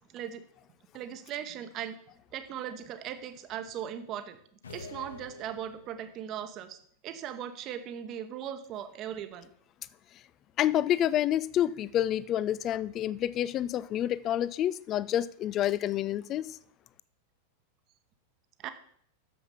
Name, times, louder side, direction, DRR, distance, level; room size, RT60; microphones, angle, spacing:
voice 1, 0.1-0.4 0.9-2.0 2.3-4.4 4.7-6.8 7.0-9.5 18.6-18.7, right 10 dB, 35° right, 1.0 m, -38 dB
sound 1, 4.6-6.2, left 3 dB, 70° left, 1.0 m, -46 dB
voice 2, 10.6-16.6, left 11 dB, 35° left, 0.4 m, -28 dB
9.3 x 7.2 x 5.6 m
figure-of-eight pair, 90°, 0 cm